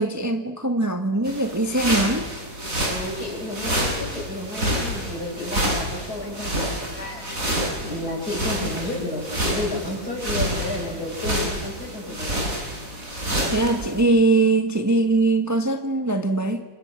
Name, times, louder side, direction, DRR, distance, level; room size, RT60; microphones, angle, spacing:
voice 1, 0.0-2.3 13.5-16.6, right 2 dB, 10° right, 6 dB, 1.4 m, -21 dB
sound 1, 1.2-14.0, right 1 dB, 45° right, 7.0 m, -28 dB
voice 2, 2.9-12.5, left 1 dB, 55° left, -1 dB, 8.3 m, -32 dB
29.5 x 26.5 x 7.3 m, 1.2 s
omnidirectional pair, 2.0 m